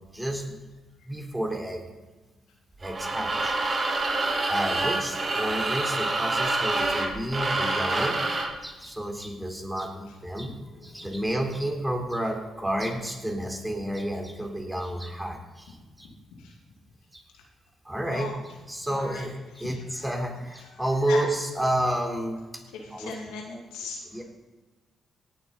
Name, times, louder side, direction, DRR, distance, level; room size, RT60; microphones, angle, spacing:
voice 1, 0.1-0.6 1.1-1.9 2.8-3.6 4.5-8.2 8.6-10.5 10.8-16.1 17.1-17.2 17.8-22.6 22.9-23.2 24.1-24.2, right 1 dB, 10° right, 1 dB, 3.8 m, -30 dB
sound 1, 2.8-8.6, right 2 dB, 45° right, 2.4 m, -27 dB
voice 2, 18.9-19.2 19.6-19.7 21.1-21.2 22.7-24.0, left 5 dB, 85° left, -1 dB, 2.4 m, -37 dB
18.0 x 9.1 x 4.1 m, 1.2 s
hypercardioid pair, 45°, 0 cm